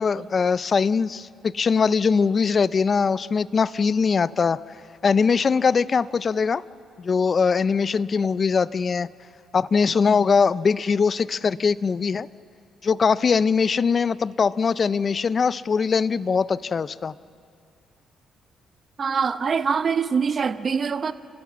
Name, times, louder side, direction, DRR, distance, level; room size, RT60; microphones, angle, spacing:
voice 1, 0.0-4.6 5.0-6.6 7.0-9.1 9.5-12.3 12.8-17.1, left 5 dB, 40° left, 18 dB, 0.4 m, -21 dB
voice 2, 19.0-21.1, right 6 dB, 45° right, 12 dB, 0.8 m, -24 dB
29.5 x 15.0 x 7.4 m, 2.4 s
cardioid pair, 90°, 0 cm